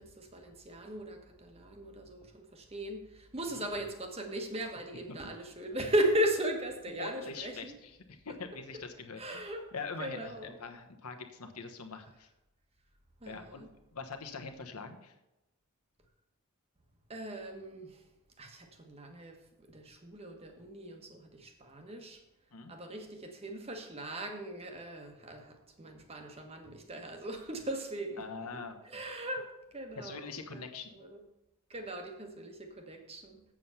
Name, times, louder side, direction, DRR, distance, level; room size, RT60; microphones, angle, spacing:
voice 1, 0.0-7.7 9.2-9.7 10.0-10.5 13.2-13.7 17.1-18.1 18.4-22.2 22.7-28.6 28.8-30.6 31.0-31.2 31.7-33.4, right 1 dB, 25° right, 1.2 m, -37 dB
voice 2, 7.0-9.4 9.7-12.3 13.3-13.7 13.9-15.1 22.5-22.7 28.2-28.8 30.0-30.9, left 4 dB, 85° left, 1.2 m, -43 dB
7.7 x 7.5 x 5.7 m
head